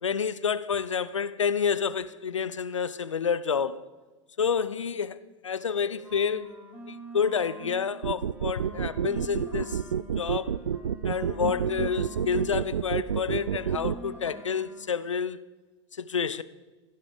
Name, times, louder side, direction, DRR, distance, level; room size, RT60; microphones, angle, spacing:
voice 1, 0.0-3.9 4.4-6.6 6.9-9.8 10.2-10.5 11.0-15.4 15.9-16.4, left 6 dB, 85° left, 0.7 m, -29 dB
sound 1, 5.6-7.9 8.2-12.6 12.8-14.9, right 2 dB, 10° right, 4.1 m, -46 dB
sound 2, 8.0-14.0, right 8 dB, 80° right, 0.5 m, -28 dB
16.5 x 15.5 x 5.1 m
figure-of-eight pair, 90°, 16 cm